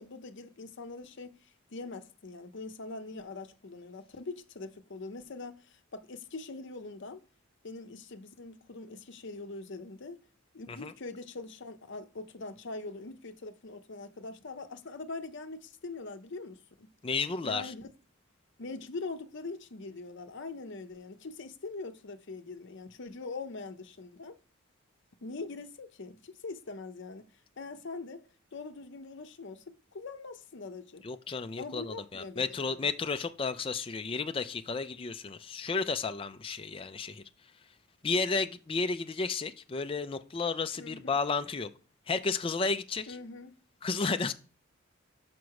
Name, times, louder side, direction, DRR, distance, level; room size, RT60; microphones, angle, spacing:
voice 1, 0.0-7.2 7.6-10.2 10.5-16.9 17.4-17.9 18.6-24.4 25.2-27.2 27.6-31.0 31.6-32.9 40.8-41.2 43.1-43.6, left 3 dB, 60° left, 0.7 m, -43 dB
voice 2, 17.0-17.7 31.0-37.2 38.0-41.7 42.1-43.1 43.8-44.3, left 4 dB, 25° left, 0.4 m, -32 dB
6.1 x 5.2 x 4.7 m
head